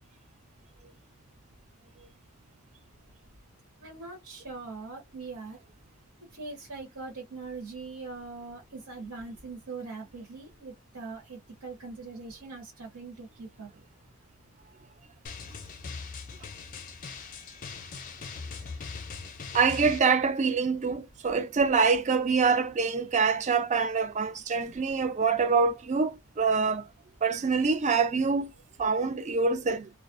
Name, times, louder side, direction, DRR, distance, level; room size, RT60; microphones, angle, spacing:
voice 1, 3.8-5.6 6.3-13.7, right 3 dB, 90° right, 1.1 m, -41 dB
Drum, 15.2-20.0, left 4 dB, 35° left, 0.5 m, -40 dB
voice 2, 19.5-26.9 27.2-28.5 28.8-29.9, right 5 dB, 30° right, 0.4 m, -25 dB
2.3 x 2.1 x 2.5 m
head